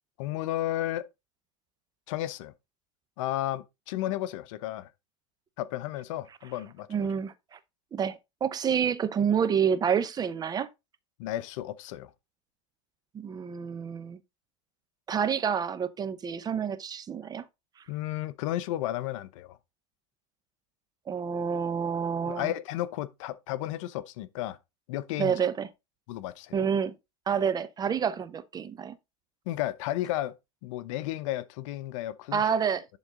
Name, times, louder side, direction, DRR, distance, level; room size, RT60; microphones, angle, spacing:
voice 1, 0.2-1.1 2.1-2.5 3.2-4.9 5.6-6.9 11.2-12.1 17.9-19.6 22.2-24.6 24.9-25.3 26.1-26.7 29.5-30.3 30.6-32.5, left 14 dB, 60° left, 0.8 m, -33 dB
voice 2, 6.9-7.6 7.9-10.7 13.1-14.2 15.1-17.4 21.1-22.5 25.2-25.7 26.5-26.9 27.3-29.0 32.3-32.9, right 7 dB, 20° right, 0.7 m, -28 dB
11.0 x 4.0 x 3.8 m
hypercardioid pair, 115°, 18 cm